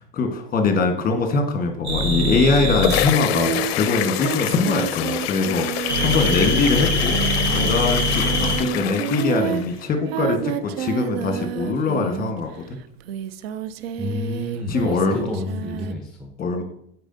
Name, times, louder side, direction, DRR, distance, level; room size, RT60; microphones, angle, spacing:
voice 1, 0.1-5.7 6.0-7.2 7.5-12.5 14.7-15.2 16.4-16.6, left 4 dB, 25° left, 5 dB, 1.3 m, -22 dB
sound 1, 1.8-3.1 5.9-8.6, left 1 dB, 85° right, 1.7 m, -22 dB
sound 2, 2.4-9.8, left 13 dB, 70° left, 0.5 m, -27 dB
Singing, 3.2-12.5 13.0-15.9, right 12 dB, 65° right, 0.5 m, -30 dB
voice 2, 14.0-16.3, left 2 dB, ahead, 2 dB, 0.8 m, -30 dB
8.8 x 4.5 x 2.7 m, 0.72 s
hypercardioid pair, 90°, 32 cm